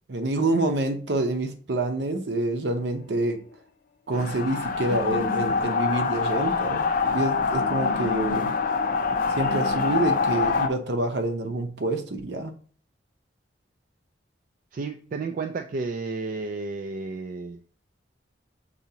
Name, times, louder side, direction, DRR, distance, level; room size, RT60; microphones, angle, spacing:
voice 1, 0.1-3.4 4.1-6.8 7.1-8.5 9.3-12.5, right 2 dB, 70° right, 0.7 m, -27 dB
sound 1, 4.1-10.7, left 4 dB, 50° left, 0.4 m, -25 dB
voice 2, 14.7-17.6, right 4 dB, 50° right, 0.3 m, -32 dB
6.8 x 2.8 x 2.8 m
head